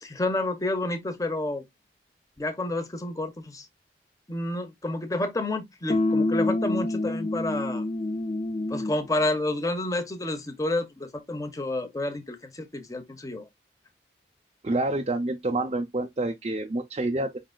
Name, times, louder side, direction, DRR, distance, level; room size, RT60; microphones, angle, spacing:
voice 1, 0.0-1.6 2.4-3.7 4.3-7.8 8.7-13.5, left 2 dB, 20° left, 0.9 m, -30 dB
sound 1, 5.9-9.1, left 2 dB, 35° left, 0.4 m, -27 dB
voice 2, 14.6-17.4, right 2 dB, 35° right, 0.5 m, -28 dB
5.4 x 3.8 x 2.3 m
head